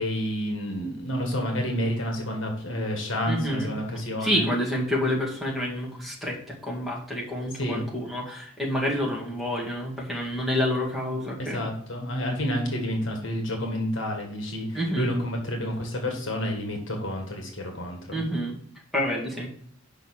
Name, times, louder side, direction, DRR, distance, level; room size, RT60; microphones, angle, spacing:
voice 1, 0.0-4.5 7.5-7.8 11.4-18.2, equal, 60° left, 2 dB, 1.7 m, -29 dB
voice 2, 3.3-3.7 4.2-11.6 14.7-15.1 18.1-18.6 18.9-19.5, equal, ahead, -3 dB, 1.9 m, -28 dB
6.7 x 5.3 x 6.4 m, 0.64 s
head